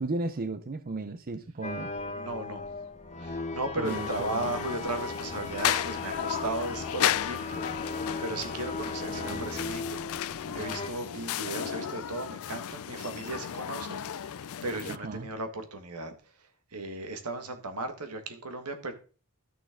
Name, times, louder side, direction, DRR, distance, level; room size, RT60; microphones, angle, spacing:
voice 1, 0.0-1.9 3.8-4.5 9.1-9.5 14.9-15.3, right 3 dB, 40° right, 10 dB, 0.7 m, -35 dB
sound 1, 1.6-10.9, left 3 dB, 30° left, 1.0 m, -37 dB
voice 2, 2.2-2.7 3.2-7.9 8.2-10.2 10.5-18.9, right 2 dB, 90° right, 7 dB, 1.8 m, -36 dB
sound 2, 3.8-15.0, left 10 dB, 65° left, 0.4 m, -34 dB
13.0 x 6.4 x 3.8 m, 0.36 s
head